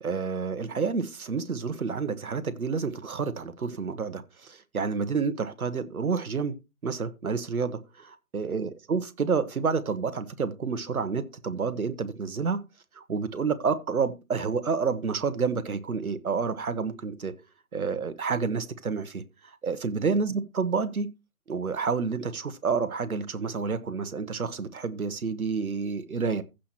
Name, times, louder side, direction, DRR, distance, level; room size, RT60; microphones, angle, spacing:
voice 1, 0.0-6.6 6.8-8.1 8.3-12.6 13.0-17.3 17.7-21.1 21.5-26.4, right 5 dB, 70° right, 1.4 m, -29 dB
15.5 x 5.9 x 3.1 m
figure-of-eight pair, 155°, 45 cm